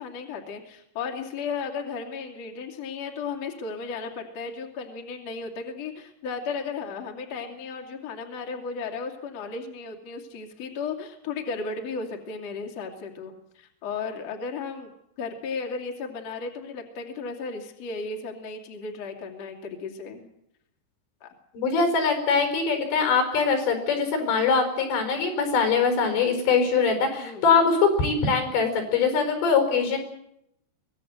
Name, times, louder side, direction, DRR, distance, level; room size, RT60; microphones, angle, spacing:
voice 1, 0.0-14.9 15.2-20.3 21.2-21.3 27.2-27.5, left 4 dB, 40° left, 1 dB, 3.1 m, -35 dB
voice 2, 21.5-30.0, left 5 dB, 80° left, 6 dB, 6.7 m, -22 dB
24.0 x 18.5 x 7.9 m, 0.77 s
omnidirectional pair, 5.1 m